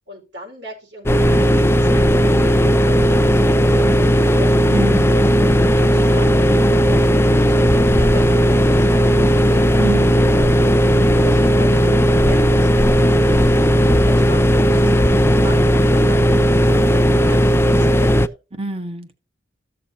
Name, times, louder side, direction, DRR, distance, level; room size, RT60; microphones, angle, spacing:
voice 1, 0.1-4.7 5.1-9.7 10.2-10.7 11.1-18.4, left 1 dB, 65° right, 4.5 m, -37 dB
sound 1, 1.1-18.3, equal, 15° left, 0.4 m, -15 dB
voice 2, 4.7-5.2 9.8-10.2 18.6-19.1, right 2 dB, 30° right, 1.3 m, -27 dB
14.5 x 6.6 x 2.7 m
head